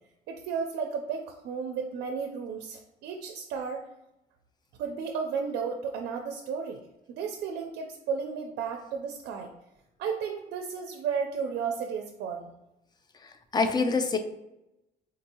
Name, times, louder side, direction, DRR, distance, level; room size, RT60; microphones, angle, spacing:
voice 1, 0.3-3.9 4.8-6.8 7.1-9.5 10.0-12.5, right 6 dB, 75° right, 3 dB, 0.4 m, -33 dB
voice 2, 13.2-14.2, left 4 dB, 25° left, 7 dB, 0.4 m, -26 dB
3.8 x 2.7 x 2.6 m, 0.92 s
cardioid pair, 110°, 17 cm